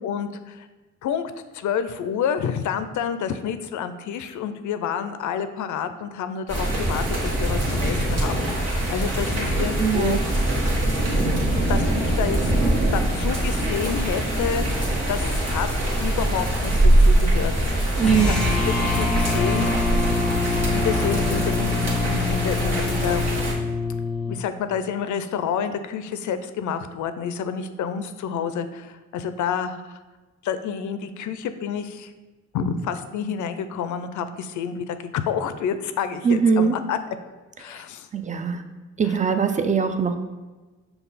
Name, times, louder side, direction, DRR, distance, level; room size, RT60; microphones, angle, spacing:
voice 1, 0.0-0.7 1.0-10.5 10.9-11.4 11.7-12.4 12.9-15.7 16.0-18.3 18.6-19.7 20.3-23.3 24.3-30.0 30.4-32.1 32.5-37.0 37.6-38.1 39.0-39.2, left 7 dB, 75° left, 10 dB, 0.4 m, -29 dB
sound 1, 6.5-23.5, right 1 dB, 55° right, 1.4 m, -23 dB
voice 2, 9.8-10.2 18.0-18.3 36.2-36.7 38.1-38.6 39.0-40.1, right 6 dB, 25° right, 7 dB, 0.4 m, -21 dB
sound 2, 18.0-24.4, left 3 dB, ahead, 1.0 m, -25 dB
5.4 x 2.3 x 4.0 m, 1.2 s
cardioid pair, 65°, 30 cm